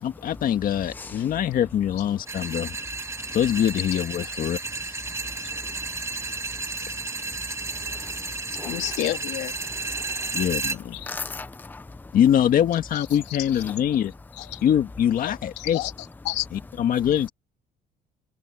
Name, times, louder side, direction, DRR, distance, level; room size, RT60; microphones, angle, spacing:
voice 1, 0.0-2.7 3.3-4.6 10.3-11.0 12.1-14.1 14.6-15.9 16.5-17.3, left 10 dB, 55° left, 1.9 m, -23 dB
voice 2, 0.9-1.3 3.2-3.4 5.2-8.9 9.6-10.4 11.0-12.1 13.7-13.8, left 3 dB, 10° left, 0.8 m, -40 dB
sound 1, 2.3-10.8, right 3 dB, 15° right, 1.8 m, -32 dB
voice 3, 8.6-9.5 10.9-11.1 12.9-13.0 14.4-14.6 15.2-15.9 16.2-16.5, left 16 dB, 85° left, 3.3 m, -30 dB
cardioid pair, 110°, 17 cm